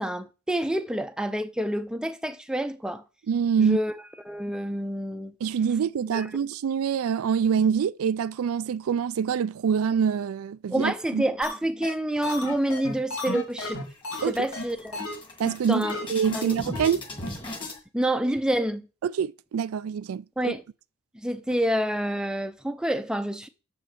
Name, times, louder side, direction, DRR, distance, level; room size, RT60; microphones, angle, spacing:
voice 1, 0.0-3.0 3.6-3.9 4.3-5.3 6.1-6.3 10.7-13.8 14.3-15.1 15.7-16.0 16.3-16.6 17.9-18.9 20.4-20.6 21.2-23.5, right 1 dB, 5° right, 0.5 m, -28 dB
voice 2, 3.3-3.8 5.4-11.2 14.2-14.3 15.4-17.0 19.0-20.5, right 7 dB, 80° right, 0.3 m, -25 dB
sound 1, 11.4-11.5 11.8-11.9 12.2-14.2 14.5-14.6 14.9-15.1 15.4-15.5 15.8-16.0 16.3-16.4 16.7-16.9 17.2-17.3 17.6-17.7, left 2 dB, 85° left, 3.2 m, -33 dB
sound 2, 12.5-13.2 13.6-13.7 14.0-17.8, left 1 dB, 20° left, 1.9 m, -39 dB
6.9 x 6.3 x 6.6 m
head